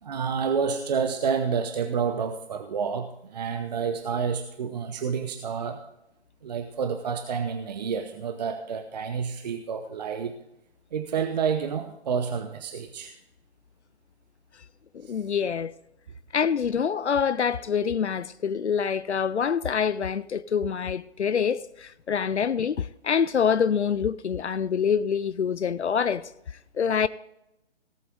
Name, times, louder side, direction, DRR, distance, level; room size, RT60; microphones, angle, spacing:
voice 1, 0.0-5.8 6.4-10.4 10.9-13.2 15.0-15.3, right 6 dB, 40° right, 0.9 m, -29 dB
voice 2, 14.9-15.7 16.3-27.1, left 7 dB, 85° left, 0.6 m, -26 dB
18.0 x 8.1 x 3.8 m
figure-of-eight pair, 145°, 33 cm